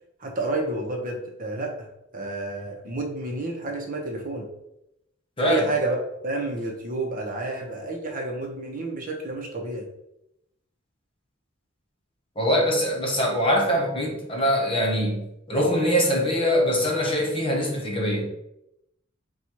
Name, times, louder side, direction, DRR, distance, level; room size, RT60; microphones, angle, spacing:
voice 1, 0.2-1.9 2.1-4.5 5.4-9.9, right 2 dB, 45° right, 1 dB, 0.8 m, -30 dB
voice 2, 12.4-18.3, equal, 30° left, -1 dB, 1.0 m, -23 dB
4.2 x 2.4 x 4.4 m, 0.82 s
head